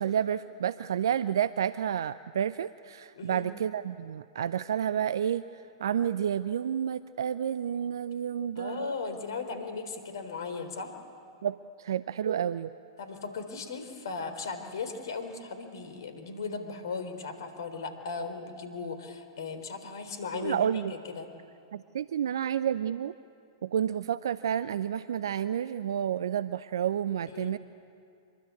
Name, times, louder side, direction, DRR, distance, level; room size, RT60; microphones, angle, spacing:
voice 1, 0.0-5.4 5.8-8.9 11.4-12.7 20.3-20.9 21.7-23.1 23.6-27.6, right 9 dB, 65° right, 16 dB, 0.6 m, -30 dB
voice 2, 3.2-3.5 8.6-10.9 13.0-20.8 21.1-21.3 27.3-27.6, left 4 dB, 65° left, 8 dB, 3.9 m, -37 dB
25.5 x 23.0 x 8.5 m, 2.5 s
figure-of-eight pair, 105°, 2 cm